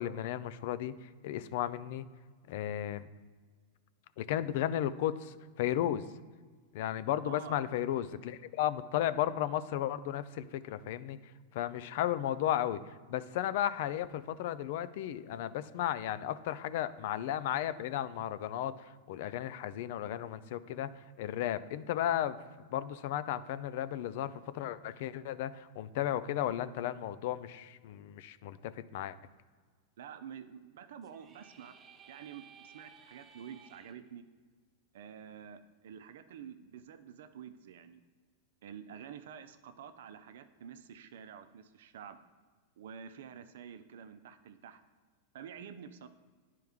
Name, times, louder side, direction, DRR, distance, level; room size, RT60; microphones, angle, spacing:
voice 1, 0.0-2.0 2.5-3.1 4.2-6.0 6.7-11.2 11.5-22.4 22.7-29.2, left 11 dB, 65° left, 14 dB, 0.4 m, -34 dB
voice 2, 7.2-7.6 30.0-31.8 32.1-34.2 34.9-38.0 38.6-42.2 42.8-44.8 45.3-46.1, right 8 dB, 70° right, 11 dB, 0.6 m, -48 dB
sound 1, 31.0-33.9, right 6 dB, 30° right, 0.8 m, -57 dB
10.5 x 4.6 x 3.6 m, 1.5 s
hypercardioid pair, 105°, 0 cm